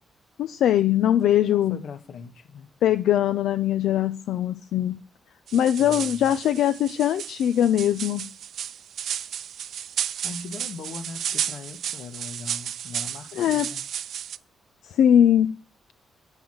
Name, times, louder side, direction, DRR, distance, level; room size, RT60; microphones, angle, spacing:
voice 1, 0.4-1.8 2.8-5.0 5.5-8.3 13.3-13.7 14.8-15.6, left 10 dB, 85° left, 0.5 m, -21 dB
voice 2, 1.2-2.7 5.8-6.3 10.2-13.9, left 5 dB, 65° left, 1.3 m, -40 dB
sound 1, 5.5-14.4, right 9 dB, 70° right, 0.5 m, -33 dB
9.0 x 5.8 x 7.8 m
cardioid pair, 115°, 0 cm